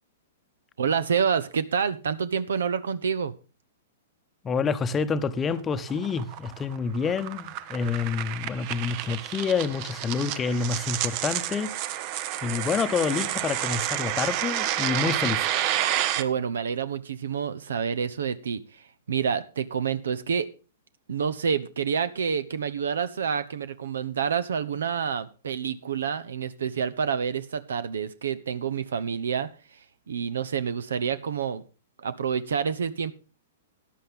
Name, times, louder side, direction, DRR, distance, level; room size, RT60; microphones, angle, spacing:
voice 1, 0.8-3.3 16.2-20.5 21.1-29.5 30.1-31.6 32.0-33.1, right 7 dB, 75° right, 0.8 m, -28 dB
voice 2, 4.4-11.7 12.4-15.5, left 5 dB, 20° left, 0.9 m, -28 dB
sound 1, 5.5-16.2, right 12 dB, 45° right, 0.8 m, -30 dB
14.0 x 10.5 x 3.6 m
hypercardioid pair, 115°, 0 cm